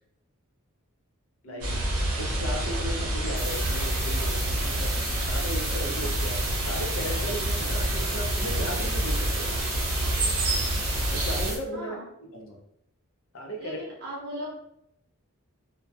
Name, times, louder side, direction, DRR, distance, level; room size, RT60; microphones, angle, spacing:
voice 1, 1.5-1.8 11.7-12.1 13.6-14.6, equal, 45° right, -5 dB, 0.7 m, -38 dB
sound 1, 1.6-11.5, right 1 dB, 80° right, 0.7 m, -28 dB
voice 2, 2.2-4.9 5.3-9.6 11.1-12.6 13.3-13.8, equal, 60° left, 1 dB, 0.5 m, -36 dB
sound 2, 3.4-11.6, right 2 dB, 15° right, 0.3 m, -35 dB
2.1 x 2.1 x 2.7 m, 0.75 s
head